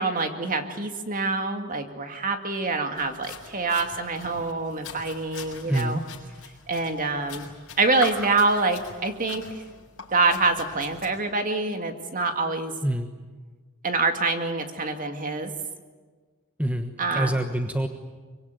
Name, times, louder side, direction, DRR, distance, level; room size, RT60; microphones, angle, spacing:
voice 1, 0.0-6.0 6.7-7.5 7.8-9.4 10.1-12.7 13.8-15.5 17.0-17.3, right 3 dB, 40° right, 6 dB, 2.3 m, -26 dB
sound 1, 3.0-11.1, left 5 dB, 60° left, 6.3 m, -42 dB
voice 2, 5.7-6.0 12.8-13.1 16.6-17.9, right 1 dB, 5° right, 5 dB, 1.2 m, -26 dB
25.0 x 24.5 x 9.2 m, 1.5 s
head